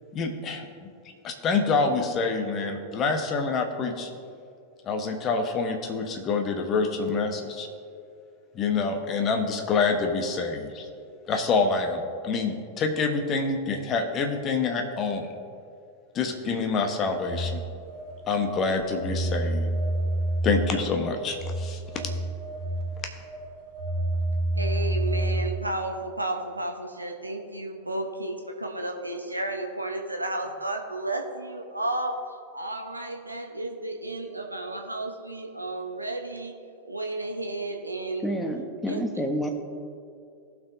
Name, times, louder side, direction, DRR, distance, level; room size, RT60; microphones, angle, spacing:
voice 1, 0.1-0.9 1.2-4.1 4.8-7.7 8.5-10.9 11.3-15.3 16.1-17.6 18.3-19.7 20.4-22.1, left 4 dB, 30° left, 5 dB, 1.1 m, -27 dB
Telephone, 17.1-25.7, right 1 dB, 45° right, 2.0 m, -29 dB
voice 2, 24.5-32.1 32.5-36.5 36.8-38.3 38.9-39.0, right 2 dB, 85° right, 3 dB, 0.8 m, -32 dB
voice 3, 38.2-39.5, equal, 5° left, 4 dB, 1.0 m, -29 dB
18.0 x 6.1 x 2.7 m, 2.4 s
figure-of-eight pair, 90°, 0 cm